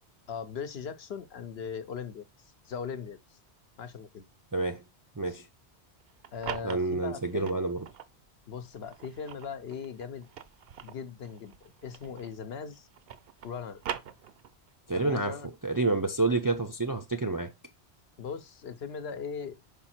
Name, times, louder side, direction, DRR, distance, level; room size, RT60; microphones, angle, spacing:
voice 1, 0.3-3.4 3.8-4.3 5.3-5.4 6.3-7.6 8.5-10.3 10.8-11.5 11.8-12.9 13.4-13.8 14.9-15.5 18.2-19.6, left 6 dB, 65° left, 1.0 m, -39 dB
voice 2, 4.5-4.8 5.2-5.5 6.6-7.8 14.9-17.5, right 3 dB, 30° right, 0.4 m, -29 dB
sound 1, 6.0-8.1 8.7-12.5 12.7-14.7, right 9 dB, 65° right, 0.8 m, -42 dB
5.5 x 4.9 x 4.3 m
omnidirectional pair, 1.1 m